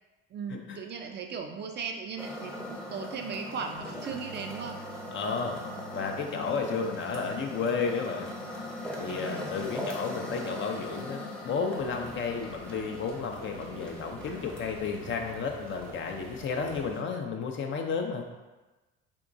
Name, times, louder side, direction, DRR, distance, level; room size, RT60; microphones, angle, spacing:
voice 1, 0.3-4.8 9.1-9.5, right 6 dB, 35° right, 4 dB, 0.4 m, -37 dB
sound 1, 2.2-17.0, left 1 dB, 5° left, 0.6 m, -41 dB
sound 2, 3.8-11.2, right 4 dB, 85° left, 0.6 m, -51 dB
voice 2, 5.1-5.6 5.9-8.3 9.0-18.2, left 5 dB, 40° left, 2 dB, 0.6 m, -32 dB
Rain, 11.8-16.9, right 2 dB, 85° right, 0.7 m, -48 dB
3.6 x 2.9 x 2.6 m, 1.1 s
hypercardioid pair, 60°, 29 cm